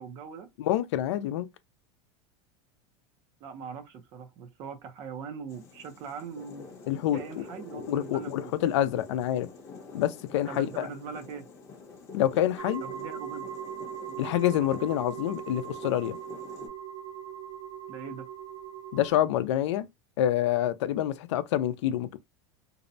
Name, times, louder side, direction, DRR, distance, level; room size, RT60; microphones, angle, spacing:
voice 1, 0.0-0.5 3.4-6.7 7.1-8.5 10.5-11.5 12.8-13.4 14.1-14.2 17.9-18.3, right 6 dB, 30° right, 0.5 m, -41 dB
voice 2, 0.6-1.5 6.9-7.2 7.7-9.5 9.9-10.9 12.1-12.8 14.2-16.2 18.9-19.9 20.2-22.2, left 12 dB, 80° left, 0.4 m, -27 dB
sound 1, 5.5-16.7, left 4 dB, 20° left, 0.6 m, -47 dB
sound 2, 12.6-19.1, right 9 dB, 55° right, 1.2 m, -40 dB
2.6 x 2.1 x 2.6 m
supercardioid pair, 175°, 15 cm